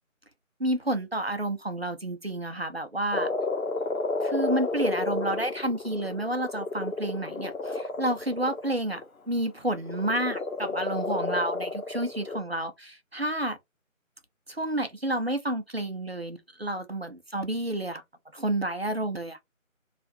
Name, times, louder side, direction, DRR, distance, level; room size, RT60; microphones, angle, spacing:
voice 1, 0.6-3.3 4.2-9.0 9.3-13.6 14.5-18.0 18.3-19.4, right 1 dB, 50° right, 0.5 m, -30 dB
Frog, 3.1-9.0 9.9-12.4, left 3 dB, 85° left, 0.8 m, -31 dB
2.7 x 2.4 x 3.2 m
figure-of-eight pair, 175°, 41 cm